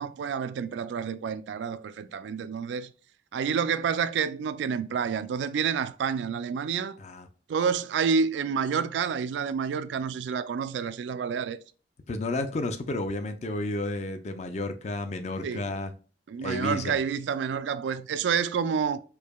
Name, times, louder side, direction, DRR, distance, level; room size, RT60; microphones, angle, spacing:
voice 1, 0.0-2.9 3.3-7.0 7.5-11.6 15.4-15.6 16.3-19.0, right 6 dB, 80° right, 0.3 m, -29 dB
voice 2, 12.1-15.9 16.4-17.0, left 2 dB, 40° left, 0.4 m, -31 dB
4.6 x 2.7 x 2.2 m
head